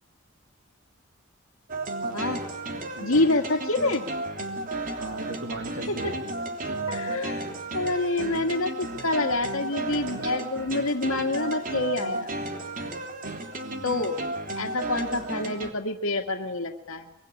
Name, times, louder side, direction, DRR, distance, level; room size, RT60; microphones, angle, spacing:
sound 1, 1.7-15.7, right 2 dB, 40° right, 3.2 m, -33 dB
voice 1, 3.0-4.1 5.9-6.1 6.9-7.5 7.7-12.3 13.8-14.2 14.6-17.1, left 2 dB, 85° left, 2 dB, 1.9 m, -27 dB
voice 2, 5.0-7.0 13.6-13.9, right 2 dB, 65° right, 6 dB, 2.7 m, -38 dB
24.5 x 23.5 x 9.9 m, 0.80 s
head